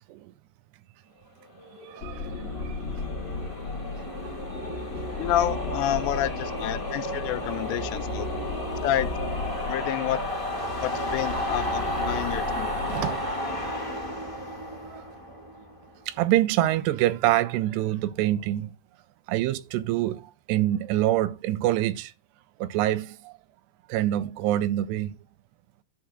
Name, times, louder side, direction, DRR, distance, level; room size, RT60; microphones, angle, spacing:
sound 1, 1.6-15.9, left 1 dB, 10° left, 1.8 m, -33 dB
voice 1, 1.8-2.8 12.2-12.3 12.9-13.3 14.9-15.0 16.1-18.7 19.3-22.1 22.6-23.3 23.9-25.2, right 14 dB, 85° right, 2.8 m, -26 dB
sound 2, 2.0-13.7, left 3 dB, 50° left, 2.0 m, -36 dB
voice 2, 5.2-8.3 8.8-9.1 9.7-10.2 10.8-12.7, left 13 dB, 85° left, 2.9 m, -29 dB
11.0 x 4.2 x 7.3 m
omnidirectional pair, 4.9 m